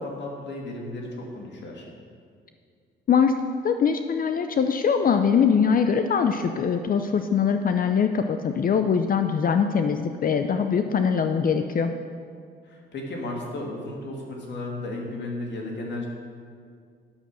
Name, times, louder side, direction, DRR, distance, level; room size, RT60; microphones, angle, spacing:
voice 1, 0.0-1.9 12.6-16.1, left 2 dB, 60° left, 0 dB, 2.3 m, -34 dB
voice 2, 3.1-3.4 3.6-11.9, left 6 dB, 45° left, 7 dB, 0.5 m, -22 dB
9.8 x 6.8 x 6.3 m, 2.1 s
cardioid pair, 90°, 20 cm